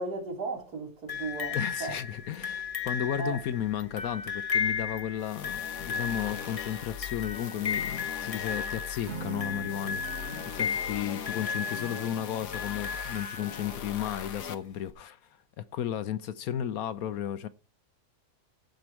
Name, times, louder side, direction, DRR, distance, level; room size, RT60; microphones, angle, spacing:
voice 1, 0.0-1.9 3.2-3.4, right 3 dB, 90° right, 3.5 m, -35 dB
sound 1, 1.1-13.9 14.9-15.0, left 6 dB, 25° left, 0.9 m, -35 dB
voice 2, 1.5-10.0 10.3-15.2 15.6-17.5, left 10 dB, 70° left, 1.1 m, -34 dB
sound 2, 5.2-14.5, left 8 dB, 90° left, 1.6 m, -40 dB
Acoustic guitar / Strum, 9.0-13.5, right 3 dB, 45° right, 1.8 m, -44 dB
16.0 x 5.3 x 4.5 m
omnidirectional pair, 1.7 m